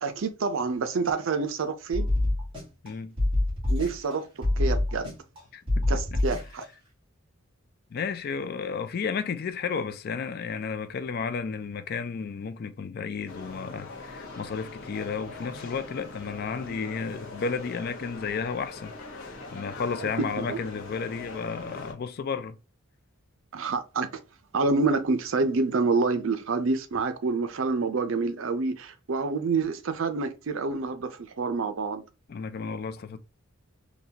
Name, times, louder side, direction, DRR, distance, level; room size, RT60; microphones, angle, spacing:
voice 1, 0.0-2.1 3.7-5.1 5.9-6.6 16.7-16.8 20.0-20.6 23.5-24.1 24.5-32.0, right 4 dB, 70° right, 0.5 m, -27 dB
sound 1, 1.9-2.9 3.2-4.1 4.4-5.4 5.7-6.6, left 1 dB, 25° right, 1.8 m, -26 dB
voice 2, 5.5-6.2 7.9-22.5 32.3-33.2, left 5 dB, 50° left, 0.3 m, -33 dB
sound 2, 13.3-21.9, left 3 dB, 75° left, 0.8 m, -42 dB
3.8 x 2.2 x 2.8 m
head